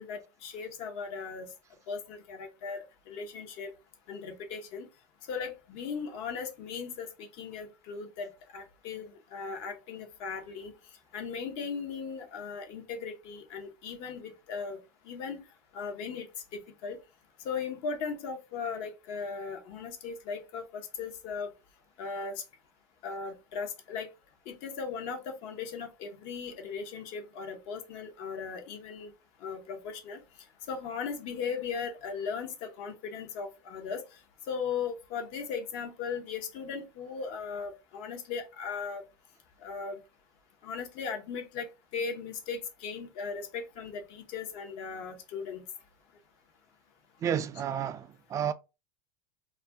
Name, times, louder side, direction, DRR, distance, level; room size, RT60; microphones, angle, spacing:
voice 1, 0.0-1.5 1.9-2.8 3.1-3.7 4.1-4.9 5.3-10.7 11.1-15.4 15.7-16.3 16.5-17.0 17.4-21.5 22.0-22.4 23.0-24.1 24.5-29.1 29.4-30.2 30.7-34.0 34.5-39.0 39.6-40.0 40.6-45.6, left 5 dB, 60° left, 0.8 m, -37 dB
voice 2, 47.2-48.5, right 8 dB, 30° right, 0.3 m, -31 dB
2.4 x 2.1 x 3.3 m
hypercardioid pair, 105°, 11 cm